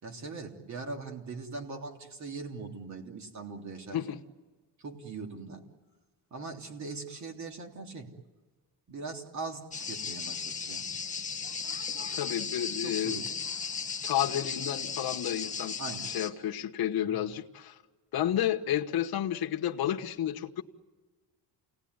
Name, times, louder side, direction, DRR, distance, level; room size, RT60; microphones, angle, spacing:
voice 1, 0.0-4.0 4.8-5.7 6.3-8.1 8.9-10.8 12.7-13.3 14.2-14.4 15.8-16.1 17.0-17.2 18.1-18.3, right 4 dB, 40° right, 3 dB, 3.3 m, -41 dB
sound 1, 9.7-16.3, left 5 dB, 15° left, 2.1 m, -36 dB
voice 2, 12.0-13.2 14.0-15.8 16.0-17.7 18.1-20.6, left 11 dB, 55° left, 3 dB, 1.4 m, -31 dB
29.0 x 19.0 x 9.7 m, 1.3 s
cardioid pair, 165°, 44 cm